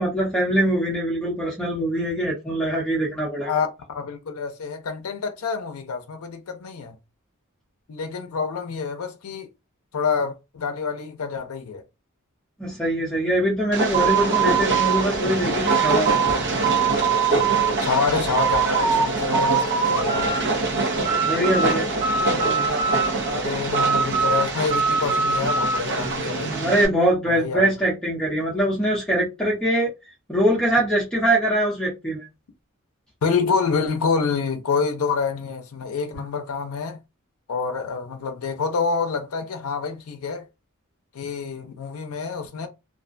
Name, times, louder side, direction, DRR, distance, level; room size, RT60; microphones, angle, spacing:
voice 1, 0.0-3.6 12.6-16.1 21.2-22.8 26.4-29.9 30.3-32.3 36.1-36.2, right 1 dB, 5° left, 0.7 m, -23 dB
voice 2, 3.4-6.9 7.9-9.5 9.9-11.8 17.8-20.3 23.3-26.6 27.3-27.7 33.2-37.0 37.5-40.4 41.1-42.7, left 5 dB, 85° left, 0.5 m, -27 dB
Train, 13.7-26.9, right 2 dB, 60° right, 0.6 m, -25 dB
sound 1, 13.9-16.4 16.6-17.7 18.1-19.0 19.3-20.4 20.7-21.7 22.0-23.3 23.7-25.8, right 6 dB, 40° right, 1.2 m, -23 dB
2.4 x 2.1 x 2.5 m
head